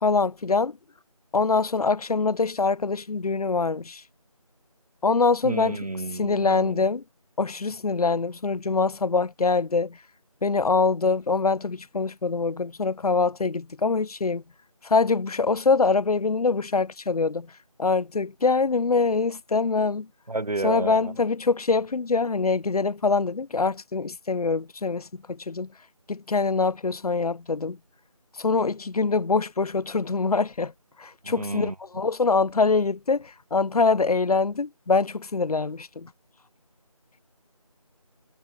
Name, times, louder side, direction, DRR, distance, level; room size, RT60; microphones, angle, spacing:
voice 1, 0.0-0.8 1.3-4.0 5.0-5.8 6.2-7.0 7.4-10.0 10.4-14.4 14.8-17.5 17.8-20.1 20.6-25.7 26.1-27.8 28.4-30.7 31.0-36.1, left 4 dB, 75° left, 0.6 m, -24 dB
voice 2, 5.4-6.8 20.3-21.2 31.2-32.1, right 2 dB, 80° right, 1.5 m, -32 dB
figure-of-eight pair, 170°, 19 cm